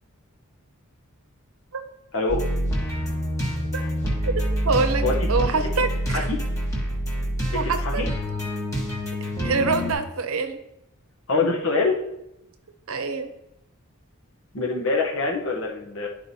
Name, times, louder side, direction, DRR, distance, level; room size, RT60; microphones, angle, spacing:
voice 1, 2.1-2.4 5.0-5.3 6.1-6.4 7.5-8.1 11.3-11.9 14.5-16.1, left 3 dB, 65° left, 1 dB, 0.9 m, -24 dB
sound 1, 2.3-9.9, equal, 15° left, 1.2 m, -26 dB
voice 2, 4.6-6.3 7.5-8.0 9.4-10.6 12.9-13.3, right 4 dB, 75° right, 7 dB, 0.7 m, -25 dB
11.0 x 4.7 x 2.7 m, 0.84 s
head